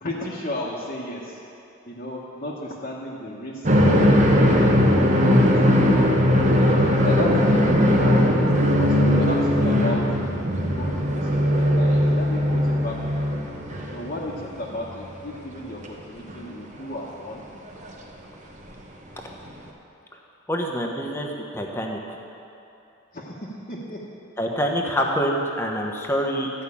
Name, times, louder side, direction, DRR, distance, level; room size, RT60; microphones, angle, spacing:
voice 1, 0.0-1.4 1.8-3.7 4.0-5.9 6.6-10.0 10.7-13.4 13.9-17.4 23.1-24.0, left 1 dB, 40° left, -6 dB, 1.2 m, -34 dB
sound 1, 3.6-14.6 14.9-15.0 16.3-16.4 17.8-17.9 19.5-19.6, equal, 35° right, 1.0 m, -19 dB
voice 2, 20.5-22.0 24.4-26.5, equal, 10° left, 0 dB, 1.1 m, -26 dB
13.0 x 5.7 x 8.5 m, 2.8 s
head